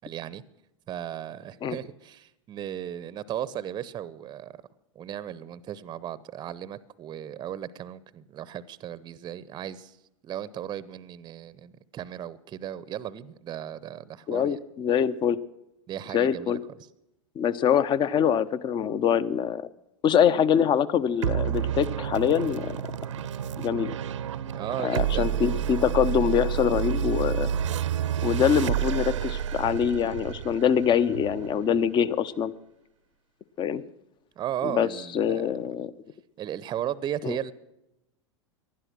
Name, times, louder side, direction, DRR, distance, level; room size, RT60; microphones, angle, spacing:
voice 1, 0.0-0.4 0.9-4.6 4.9-10.0 10.2-14.6 15.9-16.6 24.5-25.3 34.4-35.5 36.4-37.5, right 10 dB, 25° right, 0.8 m, -36 dB
voice 2, 14.3-15.4 16.1-16.6 17.4-19.7 20.0-22.8 23.6-23.9 24.8-27.5 28.2-32.5 33.6-33.8 34.6-34.9 35.1-35.9 37.2-37.4, left 8 dB, 30° left, 0.8 m, -24 dB
sound 1, 21.2-32.0, right 9 dB, 70° right, 0.8 m, -29 dB
19.0 x 12.0 x 6.2 m
figure-of-eight pair, 95°, 16 cm